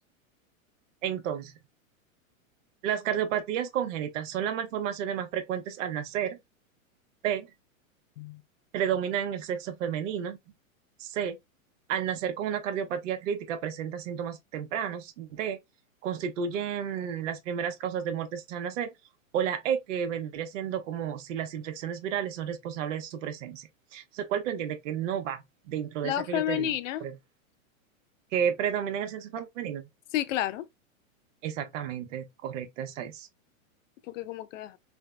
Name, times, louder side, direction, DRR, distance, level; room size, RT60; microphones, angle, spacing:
voice 1, 1.0-1.5 2.8-6.4 7.2-7.5 8.7-10.4 11.0-11.4 11.9-15.6 16.0-18.9 19.3-25.4 25.7-26.7 27.0-27.1 28.3-29.8 31.4-33.3, right 8 dB, 60° right, 0.7 m, -31 dB
voice 2, 26.0-27.0 30.1-30.6 34.1-34.8, left 12 dB, 65° left, 0.5 m, -30 dB
3.4 x 2.0 x 2.3 m
hypercardioid pair, 130°, 41 cm